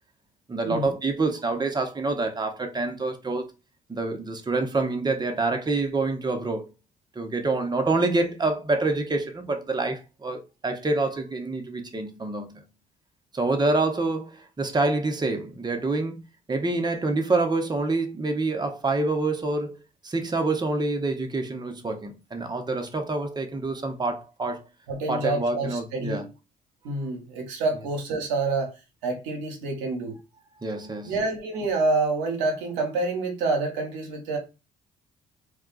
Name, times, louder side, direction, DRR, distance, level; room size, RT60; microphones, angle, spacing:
voice 1, 0.5-3.5 3.9-6.7 7.2-12.6 13.3-16.2 16.5-19.8 20.0-24.6 25.1-26.2 30.6-31.1, right 3 dB, 20° right, 0.8 m, -27 dB
voice 2, 24.9-26.3 26.8-28.7 29.0-30.2 31.0-34.4, right 3 dB, 85° right, 0.8 m, -27 dB
2.3 x 2.3 x 3.8 m
hypercardioid pair, 50°, 21 cm